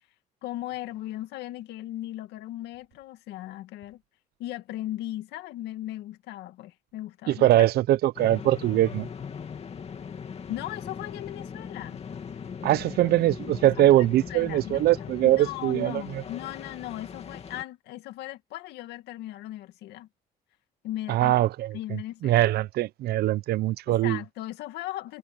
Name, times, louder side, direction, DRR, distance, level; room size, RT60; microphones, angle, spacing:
voice 1, 0.4-4.0 4.4-7.6 10.5-12.0 13.6-20.1 20.8-21.3 21.7-22.5 23.9-25.2, left 14 dB, 85° left, 2.2 m, -37 dB
voice 2, 7.3-9.1 12.6-16.2 21.1-24.2, right 14 dB, 70° right, 0.7 m, -22 dB
sound 1, 8.2-17.6, left 6 dB, 40° left, 2.8 m, -39 dB
cardioid pair, 110°, 17 cm